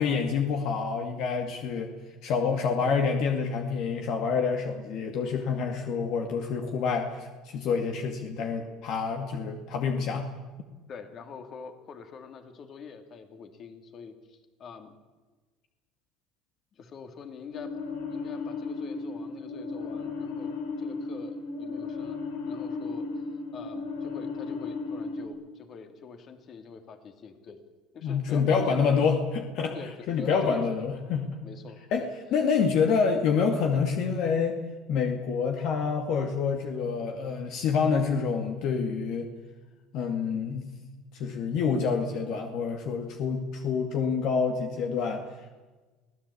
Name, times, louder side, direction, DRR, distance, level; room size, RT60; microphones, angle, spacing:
voice 1, 0.0-1.9 2.2-10.3 28.0-31.3 31.9-34.6 34.9-39.3 39.9-40.7 41.1-45.2, left 5 dB, 60° left, 5 dB, 2.2 m, -27 dB
voice 2, 10.9-14.9 16.7-17.7 18.1-22.2 22.5-23.2 23.5-27.6 27.9-29.2 29.7-30.9 31.4-31.8, left 5 dB, 40° left, 7 dB, 2.8 m, -45 dB
sound 1, 17.5-25.3, left 4 dB, 85° left, 3.8 m, -35 dB
24.0 x 17.0 x 8.6 m, 1.3 s
cardioid pair, 125°, 0 cm